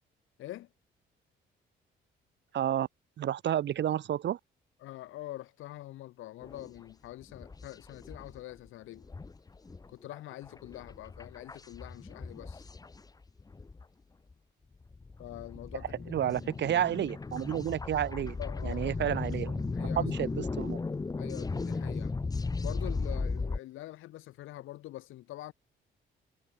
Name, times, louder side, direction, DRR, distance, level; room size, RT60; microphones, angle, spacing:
voice 1, 0.4-0.7 4.8-9.1 9.9-12.7 15.2-16.6 18.4-19.2 19.7-20.1 21.2-22.1 22.6-25.5, left 15 dB, 90° left, 4.2 m, -45 dB
voice 2, 2.5-2.9 3.2-4.4 16.1-18.4 18.6-20.8, right 11 dB, 65° right, 1.3 m, -31 dB
sound 1, 6.4-6.8 7.2-8.4 8.7-8.8 9.0-13.8 14.3-14.4 14.8-23.6, left 3 dB, 20° left, 0.8 m, -36 dB
cardioid pair, 90°, 20 cm